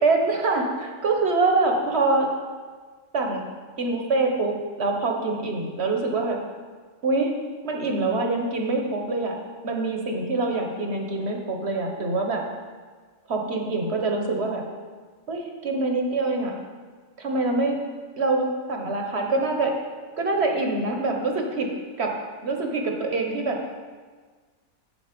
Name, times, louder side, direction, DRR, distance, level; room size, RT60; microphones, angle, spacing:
voice 1, 0.0-2.3 3.1-3.4 3.8-6.4 7.0-7.3 7.6-9.4 9.6-12.4 13.3-14.6 15.3-16.5 17.2-17.8 18.2-19.7 20.2-21.7 22.0-22.1 22.4-23.6, right 3 dB, 45° right, 2 dB, 1.2 m, -25 dB
7.8 x 7.1 x 5.9 m, 1.5 s
omnidirectional pair, 1.7 m